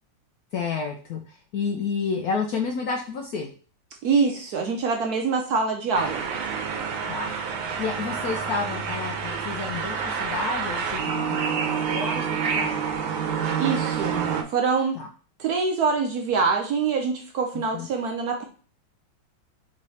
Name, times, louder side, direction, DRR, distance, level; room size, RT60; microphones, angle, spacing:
voice 1, 0.5-3.5 7.1-12.9 15.0-15.1 17.5-17.9, left 5 dB, 70° left, 2 dB, 0.9 m, -31 dB
voice 2, 4.0-6.3 13.6-14.2 14.5-15.0 15.4-18.5, right 5 dB, 65° right, 2 dB, 1.0 m, -24 dB
sound 1, 5.9-14.4, right 6 dB, 85° right, 1.5 m, -28 dB
3.7 x 3.2 x 4.0 m, 0.39 s
omnidirectional pair, 2.1 m